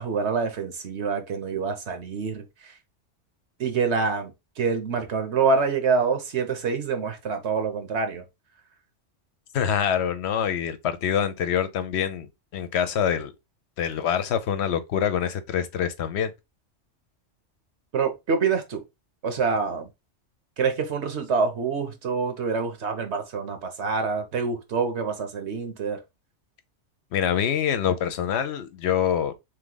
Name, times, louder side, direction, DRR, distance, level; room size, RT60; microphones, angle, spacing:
voice 1, 0.0-2.8 3.6-8.2 17.9-18.8 19.2-19.9 20.6-26.0, right 5 dB, 65° right, 1.2 m, -26 dB
voice 2, 9.5-13.3 13.8-16.3 27.1-29.3, left 8 dB, 70° left, 0.9 m, -25 dB
3.6 x 3.1 x 3.8 m
omnidirectional pair, 1.2 m